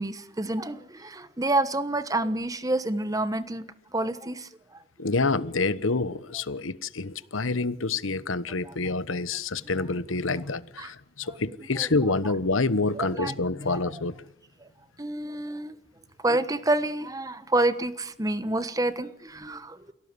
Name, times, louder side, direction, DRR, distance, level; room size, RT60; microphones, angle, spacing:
voice 1, 0.0-3.7 3.9-4.8 8.6-8.7 10.8-10.9 11.3-11.4 11.8-12.2 12.9-13.3 13.7-13.9 14.6-14.7 15.0-15.8 16.2-19.9, right 2 dB, 20° right, 1.2 m, -28 dB
voice 2, 5.0-14.2, left 3 dB, 85° left, 1.2 m, -27 dB
29.0 x 17.5 x 9.8 m
head